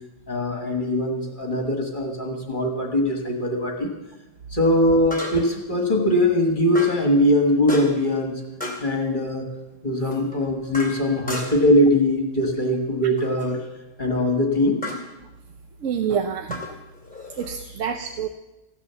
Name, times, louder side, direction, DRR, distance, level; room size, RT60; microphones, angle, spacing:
voice 1, 0.3-3.9 4.5-8.4 8.8-9.5 9.8-13.6 14.0-14.9, left 1 dB, 40° left, 2 dB, 1.7 m, -21 dB
sound 1, 1.4-1.5 5.1-5.6 6.7-7.1 7.7-8.1 8.6-8.9 10.1-11.7 13.2-13.5 14.8-15.1 16.5-17.5, left 2 dB, 5° left, 2.5 m, -34 dB
voice 2, 15.8-16.6 17.4-18.3, right 7 dB, 85° right, 7 dB, 1.1 m, -27 dB
15.0 x 10.5 x 6.9 m, 1.0 s
omnidirectional pair, 1.3 m